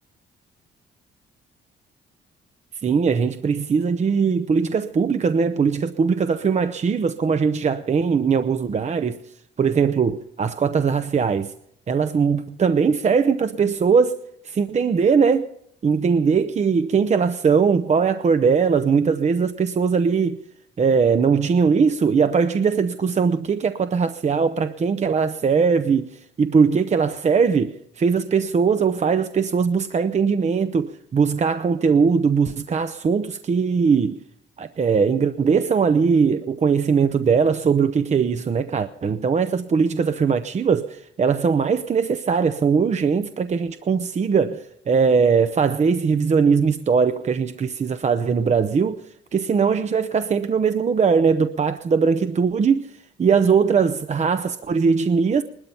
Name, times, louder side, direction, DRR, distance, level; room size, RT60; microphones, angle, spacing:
voice 1, 2.8-9.2 9.6-11.5 11.9-14.2 14.4-15.5 15.8-20.4 20.8-34.2 34.6-49.0 49.3-52.9 53.2-55.4, right 5 dB, 35° right, 0.6 m, -20 dB
19.5 x 12.5 x 5.5 m
cardioid pair, 90°, 20 cm